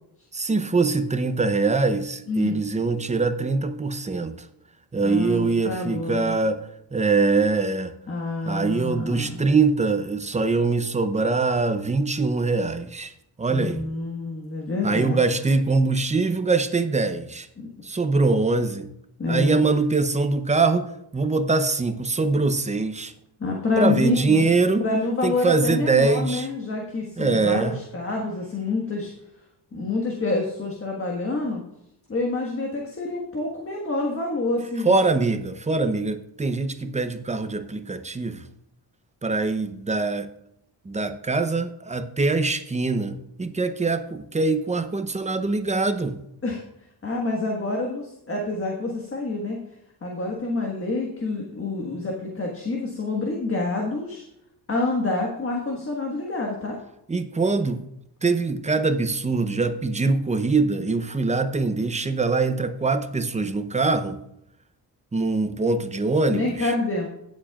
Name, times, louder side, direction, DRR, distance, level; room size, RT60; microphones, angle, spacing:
voice 1, 0.3-4.3 4.9-6.6 6.9-7.9 8.4-13.1 13.4-13.8 14.8-17.5 17.8-18.9 19.3-20.9 21.1-23.1 23.8-24.8 25.2-26.5 27.2-27.7 34.8-38.4 39.2-40.3 40.9-46.2 57.1-57.8 58.2-64.2 65.1-66.7, right 3 dB, 15° right, 9 dB, 0.6 m, -23 dB
voice 2, 2.3-2.6 5.0-6.4 8.1-9.4 13.5-15.2 17.6-17.7 19.2-19.6 23.4-24.4 24.8-29.1 29.7-31.6 32.1-34.9 46.4-46.6 47.0-49.6 50.0-54.2 54.7-56.8 66.3-67.1, left 3 dB, 30° left, -1 dB, 1.5 m, -27 dB
17.5 x 7.5 x 2.4 m, 0.78 s
wide cardioid pair, 135°, 42 cm